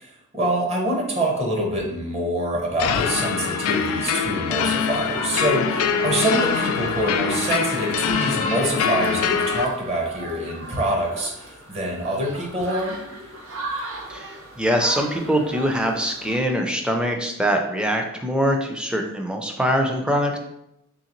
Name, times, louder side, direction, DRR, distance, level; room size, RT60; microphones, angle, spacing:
voice 1, 0.0-13.0, right 1 dB, 30° right, 0 dB, 0.8 m, -25 dB
sound 1, 2.8-9.6, left 7 dB, 80° left, 0.3 m, -24 dB
sound 2, 4.4-16.4, right 1 dB, 80° right, 0.7 m, -36 dB
voice 2, 14.1-20.4, equal, 5° right, 3 dB, 0.4 m, -23 dB
3.7 x 3.1 x 3.0 m, 0.81 s
head